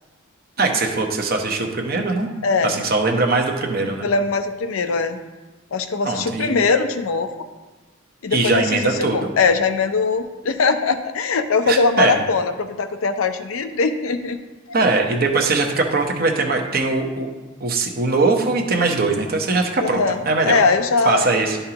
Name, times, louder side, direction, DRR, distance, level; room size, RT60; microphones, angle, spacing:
voice 1, 0.6-2.3 2.6-4.1 6.0-6.5 8.3-9.3 11.7-12.2 14.7-17.3 17.6-20.6 21.0-21.6, right 3 dB, 45° right, 3 dB, 0.9 m, -21 dB
voice 2, 2.4-2.8 4.0-5.2 5.7-7.3 8.2-14.4 19.8-20.2 20.4-21.3, left 4 dB, 80° left, 8 dB, 0.5 m, -21 dB
11.0 x 5.4 x 2.9 m, 1.2 s
head